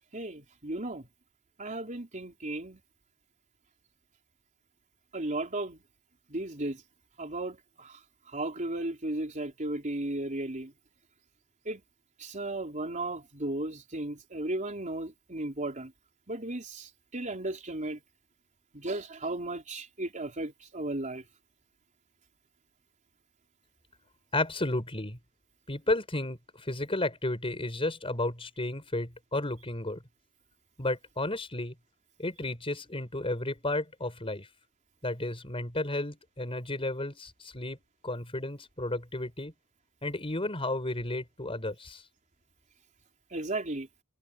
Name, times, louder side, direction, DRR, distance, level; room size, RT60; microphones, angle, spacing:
voice 1, 0.1-1.1 1.6-2.8 5.1-5.8 6.3-6.8 7.2-8.0 8.3-10.7 11.6-11.8 12.2-15.9 16.3-18.0 18.7-21.2 43.3-43.9, right 2 dB, 35° right, 4.2 m, -35 dB
voice 2, 24.3-25.2 25.7-30.0 30.8-31.7 32.2-34.5 35.0-37.8 38.0-39.5 40.0-42.0, left 2 dB, 25° left, 5.1 m, -32 dB
head